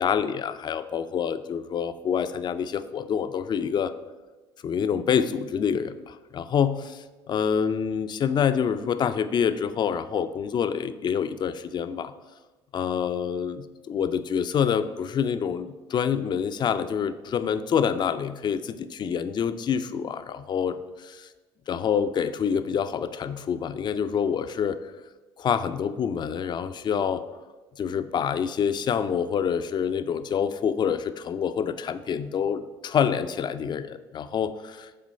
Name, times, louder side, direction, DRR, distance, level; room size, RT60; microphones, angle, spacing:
voice 1, 0.0-3.9 4.6-12.1 12.7-21.3 21.7-24.8 25.4-27.2 27.8-34.9, left 7 dB, 35° left, 11 dB, 0.5 m, -27 dB
7.6 x 3.7 x 5.6 m, 1.2 s
figure-of-eight pair, 60°, 13 cm